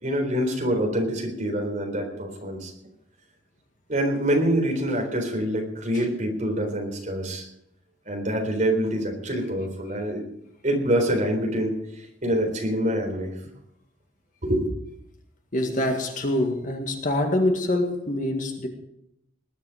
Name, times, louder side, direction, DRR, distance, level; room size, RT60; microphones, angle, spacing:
voice 1, 0.0-2.7 3.9-7.5 8.1-10.2 10.6-13.3 14.4-14.7, right 1 dB, 40° right, 2 dB, 3.9 m, -25 dB
voice 2, 15.5-18.7, left 1 dB, 40° left, 3 dB, 1.9 m, -25 dB
20.0 x 10.5 x 5.0 m, 0.76 s
head